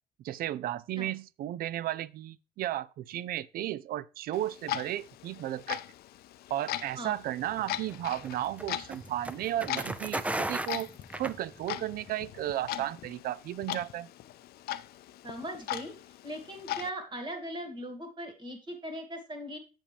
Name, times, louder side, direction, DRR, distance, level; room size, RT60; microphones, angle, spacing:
voice 1, 0.2-5.8 6.5-10.9 11.2-14.1, right 13 dB, 60° right, 0.4 m, -34 dB
Clock, 4.3-16.9, left 13 dB, 65° left, 0.5 m, -40 dB
sound 1, 7.5-11.9, right 2 dB, 10° right, 0.5 m, -36 dB
voice 2, 15.2-15.9 16.2-19.6, right 1 dB, 30° right, 2.3 m, -39 dB
7.3 x 7.3 x 3.3 m
cardioid pair, 110°, 17 cm